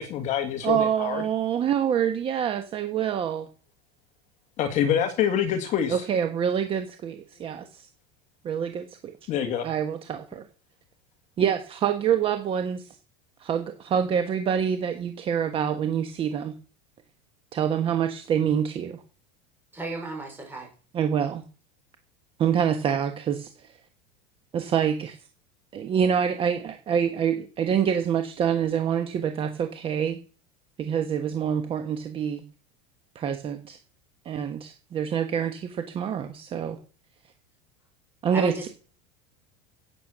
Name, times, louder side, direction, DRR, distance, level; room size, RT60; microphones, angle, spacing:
voice 1, 0.0-1.2 4.6-6.0 9.3-9.7, left 9 dB, 35° left, 7 dB, 1.8 m, -26 dB
voice 2, 0.6-3.5 5.9-7.9 8.4-9.1 9.6-10.4 11.4-13.0 13.4-16.5 17.5-19.0 20.9-21.4 22.4-23.7 24.5-25.2 25.7-30.2 30.8-32.4 33.1-33.8 34.2-36.8 38.2-38.7, right 8 dB, 25° right, 8 dB, 1.2 m, -26 dB
voice 3, 19.7-20.7 38.3-38.7, right 1 dB, 10° right, 0 dB, 5.5 m, -34 dB
16.5 x 8.4 x 6.2 m, 0.38 s
supercardioid pair, 165°, 21 cm